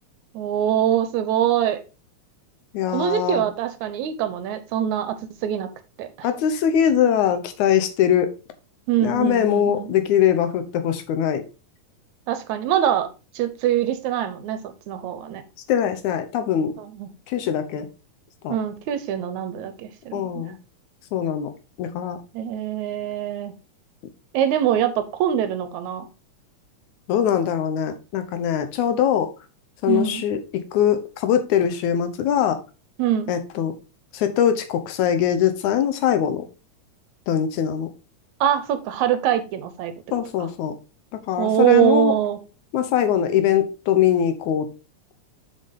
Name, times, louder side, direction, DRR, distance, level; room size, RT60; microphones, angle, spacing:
voice 1, 0.3-1.8 2.9-5.2 5.4-5.7 6.0-6.3 8.9-9.9 12.3-13.1 13.3-15.4 16.8-17.1 18.5-20.5 22.3-23.6 24.3-26.1 29.9-30.2 33.0-33.3 38.4-40.2 41.4-42.4, right 10 dB, 80° right, 2.1 m, -23 dB
voice 2, 2.7-3.4 6.2-8.3 9.0-11.4 15.7-16.8 17.3-17.9 18.4-18.6 20.1-20.6 21.1-21.5 21.8-22.2 27.1-29.3 29.8-32.6 33.3-33.7 34.1-36.4 37.3-37.9 40.1-40.8 41.1-42.1 42.7-44.7, left 9 dB, 80° left, 2.3 m, -22 dB
6.6 x 5.2 x 3.6 m
omnidirectional pair, 3.4 m